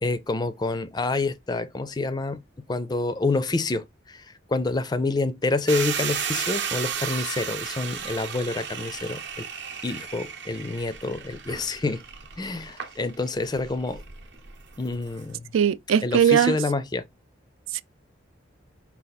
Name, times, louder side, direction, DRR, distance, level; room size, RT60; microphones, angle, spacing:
voice 1, 0.0-2.4 2.7-9.5 9.8-12.0 12.4-14.0 14.8-15.5 16.0-17.0, left 3 dB, 20° left, 0.4 m, -28 dB
sound 1, 5.7-15.3, right 7 dB, 60° right, 0.8 m, -34 dB
voice 2, 15.5-16.6 17.7-17.8, right 9 dB, 80° right, 0.3 m, -20 dB
5.3 x 2.4 x 4.0 m
head